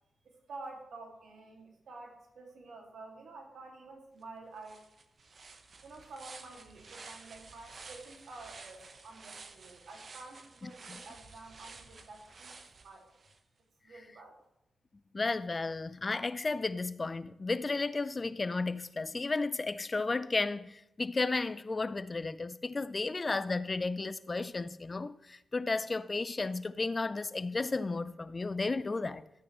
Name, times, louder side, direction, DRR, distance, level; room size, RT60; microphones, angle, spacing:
voice 1, 0.2-4.9 5.8-13.1 13.8-14.4, right 3 dB, 85° right, 2.2 m, -50 dB
sound 1, 4.2-4.3 4.6-13.4, right 4 dB, 60° right, 1.0 m, -52 dB
voice 2, 10.6-11.0 15.1-29.2, left 3 dB, 40° left, 0.5 m, -33 dB
13.0 x 9.2 x 3.1 m
cardioid pair, 65°, 0 cm